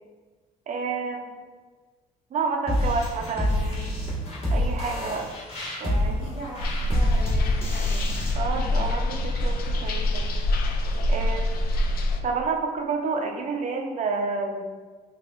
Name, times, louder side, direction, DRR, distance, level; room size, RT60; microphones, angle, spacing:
voice 1, 0.7-1.4 2.3-3.9 4.5-5.3 5.8-6.3 8.3-10.3 11.1-11.6 12.2-14.7, right 4 dB, 45° right, 3 dB, 0.6 m, -29 dB
sound 1, 2.7-8.3, left 1 dB, 35° left, 1.3 m, -27 dB
voice 2, 5.9-8.1 8.4-8.8, right 1 dB, 85° left, -8 dB, 1.4 m, -41 dB
sound 2, 6.6-12.2, left 1 dB, 65° left, 0.5 m, -25 dB
4.9 x 2.6 x 2.4 m, 1.4 s
cardioid pair, 110°, 17 cm